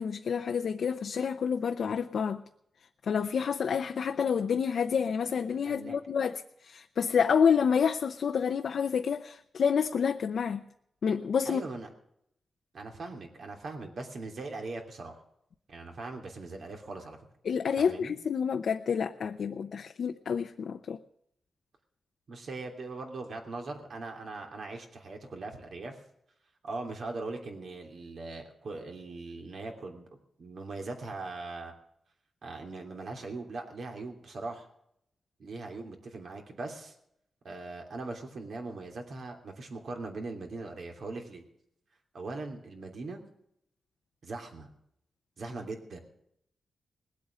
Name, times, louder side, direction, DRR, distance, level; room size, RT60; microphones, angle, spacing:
voice 1, 0.0-2.4 3.0-10.6 11.0-11.6 17.4-21.0, left 6 dB, 75° left, 0.7 m, -28 dB
voice 2, 5.7-6.0 11.5-11.9 12.7-15.1 15.7-17.2 17.8-18.1 22.3-26.0 26.6-30.1 30.4-31.7 32.4-34.7 35.4-36.9 37.4-41.4 42.1-43.2 44.2-44.7 45.4-46.0, right 3 dB, 65° right, 3.0 m, -40 dB
20.0 x 8.5 x 7.5 m
wide cardioid pair, 105°, 0 cm